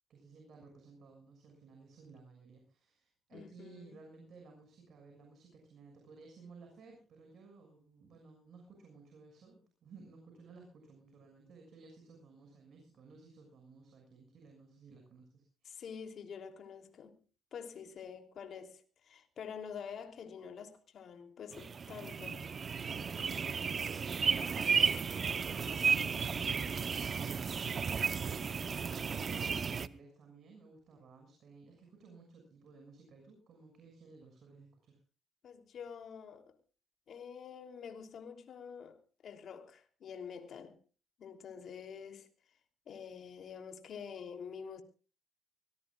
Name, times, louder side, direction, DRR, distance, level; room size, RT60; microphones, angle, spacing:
voice 1, 0.1-16.0 22.8-26.5 28.6-35.0, right 4 dB, 65° right, 6.6 m, -56 dB
voice 2, 3.3-4.0 15.6-17.2 17.5-22.5 28.1-28.6 35.4-36.6 37.1-40.8 41.2-42.3 42.9-44.8, left 7 dB, 60° left, 3.2 m, -47 dB
sound 1, 21.5-29.9, right 6 dB, 45° right, 0.9 m, -33 dB
24.0 x 19.0 x 2.5 m
cardioid pair, 90°, 0 cm